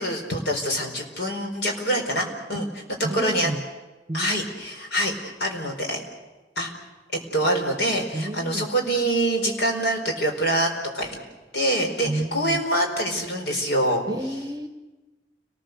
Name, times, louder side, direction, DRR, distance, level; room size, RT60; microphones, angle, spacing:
voice 1, 0.0-2.7 3.1-3.5 4.1-6.0 6.6-6.7 7.3-11.2 11.5-14.0, right 1 dB, 70° left, 2 dB, 4.6 m, -25 dB
voice 2, 3.0-3.6 4.1-4.4 8.1-8.7 12.0-12.6 14.1-14.7, right 1 dB, 25° right, 8 dB, 1.2 m, -30 dB
30.0 x 20.5 x 6.8 m, 1.2 s
head